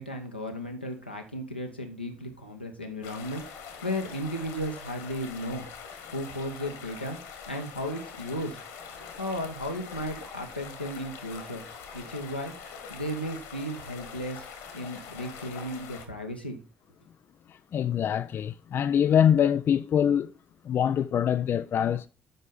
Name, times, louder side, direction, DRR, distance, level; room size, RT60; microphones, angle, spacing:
voice 1, 0.0-5.7 6.1-7.2 7.5-8.6 9.2-11.6 11.9-12.5 12.9-14.5 14.7-16.6, equal, 90° left, 0.9 m, -35 dB
sound 1, 3.0-16.1, left 6 dB, 70° left, 1.5 m, -44 dB
voice 2, 17.5-20.3 20.6-22.1, left 9 dB, 45° left, 0.4 m, -24 dB
7.8 x 5.5 x 5.0 m
figure-of-eight pair, 45°, 5 cm